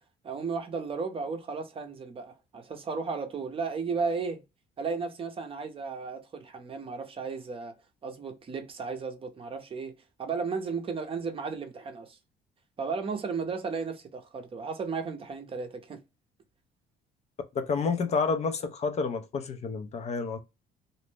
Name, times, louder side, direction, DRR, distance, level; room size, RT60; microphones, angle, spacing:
voice 1, 0.2-4.4 4.8-7.7 8.0-12.2 12.8-16.0, right 5 dB, 35° right, 0.6 m, -34 dB
voice 2, 17.6-20.4, left 4 dB, 40° left, 0.5 m, -29 dB
2.5 x 2.0 x 3.1 m
cardioid pair, 110°, 17 cm